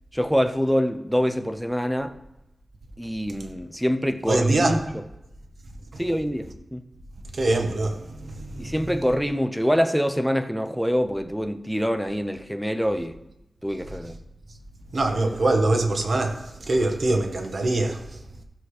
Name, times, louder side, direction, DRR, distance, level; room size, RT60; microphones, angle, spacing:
voice 1, 0.1-2.1 3.0-5.0 6.0-6.8 8.6-13.2 13.6-14.2 15.3-15.4, equal, ahead, 0.6 m, -25 dB
voice 2, 4.3-4.8 5.9-6.0 7.3-8.7 14.9-18.2, right 2 dB, 55° right, 1.2 m, -24 dB
15.0 x 6.3 x 3.3 m
wide cardioid pair, 110°, 0 cm